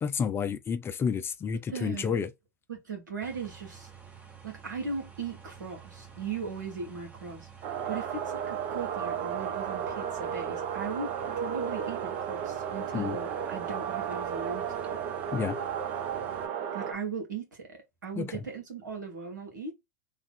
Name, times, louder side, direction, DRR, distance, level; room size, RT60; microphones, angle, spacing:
voice 1, 0.0-2.3 12.9-13.2 15.3-15.6 18.2-18.3, left 6 dB, 25° left, 0.5 m, -30 dB
voice 2, 1.7-2.2 2.7-3.9 4.4-15.0 16.7-19.7, right 5 dB, 85° right, 1.5 m, -38 dB
sound 1, 3.2-16.5, right 6 dB, 15° right, 1.1 m, -50 dB
sound 2, 7.6-16.9, right 8 dB, 50° right, 0.6 m, -33 dB
3.2 x 2.4 x 3.7 m
hypercardioid pair, 90°, 10 cm